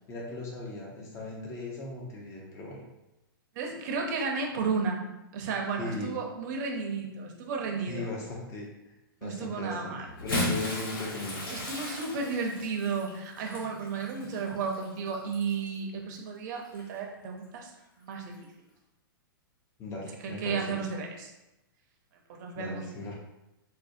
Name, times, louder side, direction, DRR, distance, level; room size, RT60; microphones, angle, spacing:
voice 1, 0.1-2.8 5.8-6.2 7.9-8.7 9.2-10.0 10.2-11.4 19.8-20.8 22.6-23.1, left 2 dB, 25° left, -2 dB, 0.8 m, -38 dB
voice 2, 3.5-8.1 9.2-10.1 11.5-17.7 18.0-18.3 20.2-21.3 22.3-22.9, right 5 dB, 50° right, 2 dB, 0.7 m, -33 dB
Bathtub (filling or washing) / Splash splatter, 10.1-15.7 16.6-16.8 18.3-18.4, left 1 dB, 65° left, 1.2 m, -36 dB
4.2 x 2.2 x 2.6 m, 0.93 s
hypercardioid pair, 130°, 12 cm